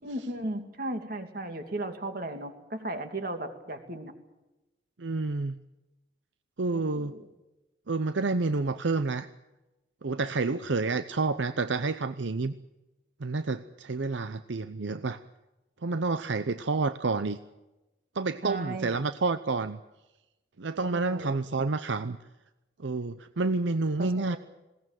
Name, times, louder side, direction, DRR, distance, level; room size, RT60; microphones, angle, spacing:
voice 1, 0.0-4.1 6.7-7.2 18.4-19.0 20.8-21.4 24.0-24.4, right 1 dB, 50° right, 6 dB, 2.7 m, -36 dB
voice 2, 5.0-5.6 6.6-7.1 7.9-9.3 10.0-12.5 13.2-15.2 15.8-17.4 18.1-19.8 20.6-22.2 22.8-24.4, right 3 dB, 80° right, 11 dB, 0.7 m, -29 dB
20.5 x 18.0 x 9.2 m, 1.0 s
head